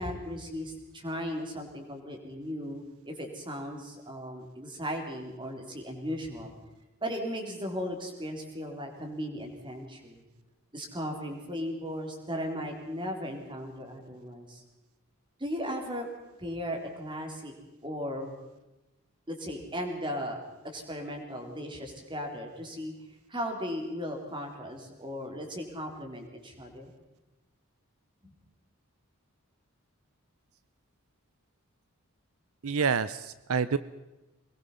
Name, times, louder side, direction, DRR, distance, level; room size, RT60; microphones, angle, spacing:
voice 1, 0.0-6.5 7.0-10.3 10.7-14.6 15.4-16.1 16.4-17.5 17.8-18.3 19.3-20.4 20.6-22.9 23.3-26.9 28.2-28.3, equal, 20° right, 2 dB, 3.7 m, -36 dB
voice 2, 32.6-33.8, right 6 dB, 75° right, 15 dB, 0.6 m, -27 dB
23.0 x 20.5 x 5.6 m, 1.0 s
head